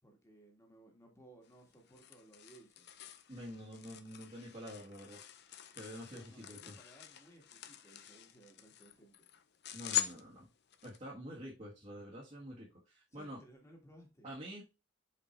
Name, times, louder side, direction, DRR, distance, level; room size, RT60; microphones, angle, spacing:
voice 1, 0.0-2.9 6.1-9.3 13.1-14.3, right 1 dB, 15° left, 1 dB, 1.7 m, -60 dB
sound 1, 1.4-11.0, left 11 dB, 50° left, 0.6 m, -44 dB
voice 2, 3.3-5.2 5.8-6.8 9.7-10.5 10.8-13.4 14.2-14.6, equal, 35° right, -6 dB, 1.5 m, -47 dB
5.4 x 4.6 x 4.3 m, 0.28 s
head